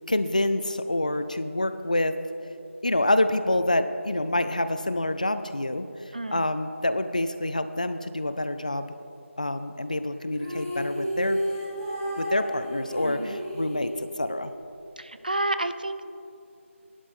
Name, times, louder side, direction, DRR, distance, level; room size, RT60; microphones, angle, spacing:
voice 1, 0.1-2.2 2.8-5.8 6.3-8.9 9.4-11.4 12.2-14.5, left 1 dB, 35° left, 10 dB, 0.4 m, -27 dB
voice 2, 6.1-6.5 13.0-13.4 15.0-16.0, right 2 dB, 40° right, 11 dB, 0.4 m, -30 dB
sound 1, 10.3-14.6, equal, 20° right, 2.5 m, -31 dB
13.0 x 11.0 x 3.7 m, 2.6 s
figure-of-eight pair, 170°, 7 cm